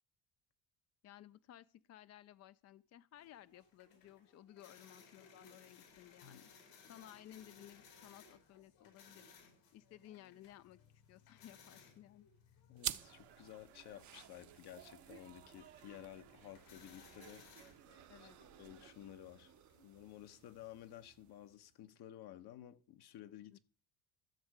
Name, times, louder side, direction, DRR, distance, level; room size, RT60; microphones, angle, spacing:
voice 1, 1.0-6.5 6.8-9.3 9.7-10.8 11.1-12.3 18.1-18.4 23.5-23.6, left 12 dB, 40° left, 0.4 m, -58 dB
sound 1, 3.2-21.1, left 5 dB, 90° left, 4.5 m, -64 dB
voice 2, 12.7-17.5 18.2-18.3 18.6-19.5 19.8-23.6, left 12 dB, 65° left, 1.1 m, -54 dB
sound 2, 12.8-21.8, right 10 dB, 45° right, 0.7 m, -51 dB
sound 3, 13.0-18.9, right 10 dB, 70° right, 1.2 m, -61 dB
14.0 x 6.3 x 4.8 m
supercardioid pair, 90°, 41 cm